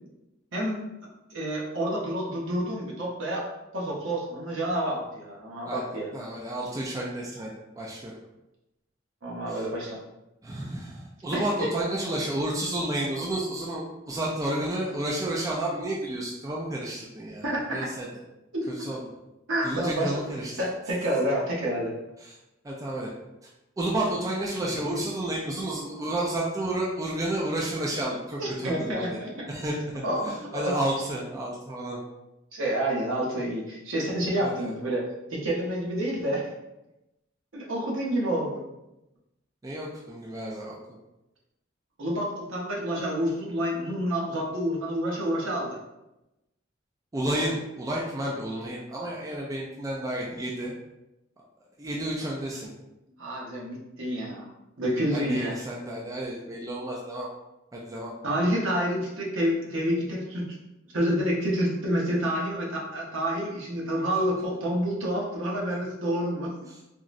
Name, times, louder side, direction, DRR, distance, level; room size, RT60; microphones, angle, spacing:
voice 1, 0.5-0.8 1.3-3.5 3.7-6.1 9.2-10.0 11.3-11.7 17.4-17.9 18.5-18.8 19.5-20.2 20.6-21.9 28.4-29.3 30.0-30.7 32.5-36.5 37.5-38.6 42.0-45.8 53.2-54.4 54.8-55.6 58.2-60.5 60.9-66.5, equal, 70° right, -3 dB, 0.8 m, -28 dB
voice 2, 6.1-8.2 9.5-9.6 10.4-18.1 18.7-19.0 19.6-20.6 22.2-22.4 22.6-23.1 23.8-29.2 29.5-29.7 30.2-32.0 34.4-34.7 39.6-40.8 47.1-50.7 51.8-52.7 55.1-57.3 57.7-58.1 66.7-66.8, right 1 dB, 15° right, -3 dB, 0.3 m, -31 dB
3.6 x 2.0 x 2.5 m, 0.94 s
head